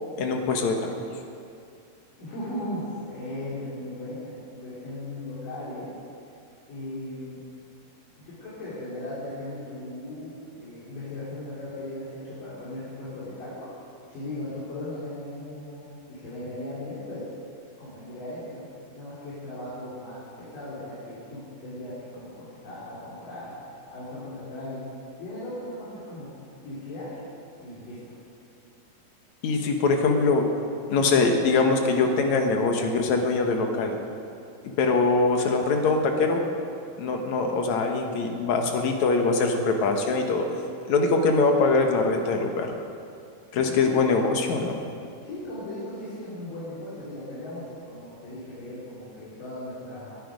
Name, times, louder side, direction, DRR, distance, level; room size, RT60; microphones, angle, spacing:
voice 1, 0.2-0.9 29.4-30.5 30.9-34.0 34.6-36.4 37.0-40.5 40.9-42.8 43.5-44.8, left 3 dB, 65° left, 3 dB, 2.4 m, -23 dB
voice 2, 2.2-5.9 6.7-7.4 8.2-13.7 14.1-17.3 17.8-18.7 18.9-23.6 23.9-24.8 25.2-26.3 26.6-27.2 27.6-28.0 43.6-44.1 45.2-50.2, left 1 dB, 85° left, -11 dB, 4.9 m, -37 dB
20.5 x 10.0 x 5.2 m, 2.5 s
omnidirectional pair, 3.8 m